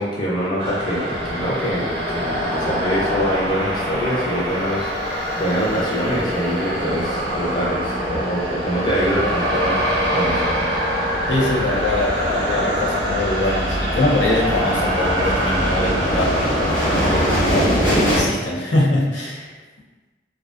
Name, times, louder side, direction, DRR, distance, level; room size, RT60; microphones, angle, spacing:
voice 1, 0.0-9.8 10.1-10.5, equal, 25° left, -6 dB, 0.5 m, -24 dB
sound 1, 0.6-17.4, equal, 60° right, 0.6 m, -24 dB
sound 2, 1.1-18.2, equal, 45° left, 1.0 m, -27 dB
voice 2, 11.3-16.4 17.1-19.5, left 2 dB, 80° left, -6 dB, 0.6 m, -23 dB
2.3 x 2.3 x 2.3 m, 1.2 s
head